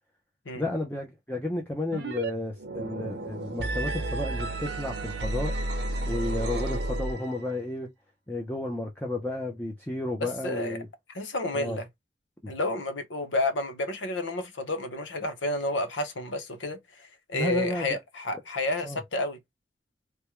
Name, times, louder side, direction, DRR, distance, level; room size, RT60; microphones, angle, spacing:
voice 1, 0.5-5.6 6.0-7.9 8.3-10.9 11.5-11.8 12.4-12.5 17.3-18.0 18.8-19.0, left 1 dB, 10° left, 0.6 m, -32 dB
sound 1, 1.9-2.3 2.6-7.5, right 2 dB, 65° right, 0.7 m, -32 dB
voice 2, 10.2-10.8 11.1-11.9 12.5-19.4, left 2 dB, 90° left, 0.8 m, -31 dB
3.4 x 2.2 x 2.9 m
head